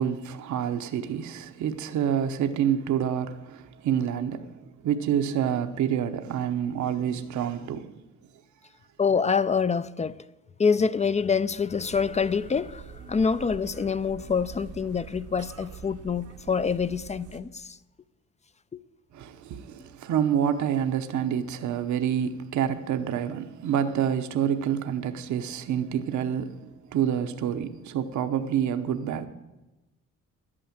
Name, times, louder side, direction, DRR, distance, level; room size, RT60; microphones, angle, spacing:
voice 1, 0.0-7.9 19.1-29.3, right 9 dB, 70° right, 0.9 m, -28 dB
voice 2, 9.0-10.2 10.6-17.8 18.7-18.8, left 5 dB, 25° left, 0.4 m, -26 dB
sound 1, 11.9-17.4, right 6 dB, 85° right, 1.3 m, -45 dB
11.0 x 8.8 x 8.9 m
cardioid pair, 90°, 30 cm